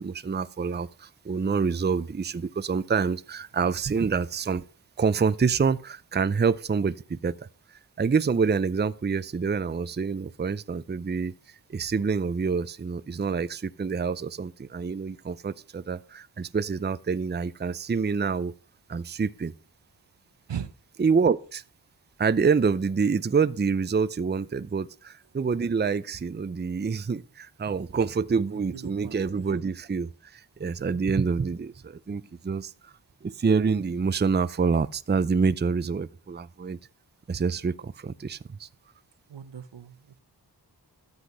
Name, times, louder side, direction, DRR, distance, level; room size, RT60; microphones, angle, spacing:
voice 1, 0.0-4.6 5.0-7.5 8.0-11.3 11.7-18.5 18.9-19.5 21.0-21.6 22.2-32.7 33.2-36.8 37.3-38.7, right 5 dB, 25° right, 0.5 m, -27 dB
voice 2, 28.7-29.5 39.3-40.0, right 8 dB, 85° right, 0.9 m, -38 dB
13.0 x 8.0 x 5.4 m
wide cardioid pair, 70°, 42 cm